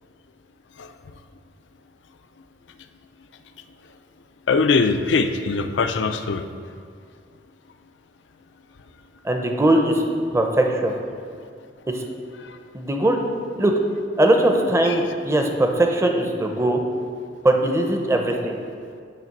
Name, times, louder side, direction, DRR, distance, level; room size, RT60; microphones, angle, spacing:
voice 1, 4.5-6.5, left 4 dB, 80° left, 9 dB, 0.5 m, -21 dB
voice 2, 9.2-10.0 10.3-10.9 11.9-12.0 12.7-13.2 13.6-13.7 14.2-16.8 17.4-18.6, right 1 dB, 15° right, 2 dB, 0.7 m, -20 dB
9.1 x 3.2 x 6.5 m, 2.2 s
head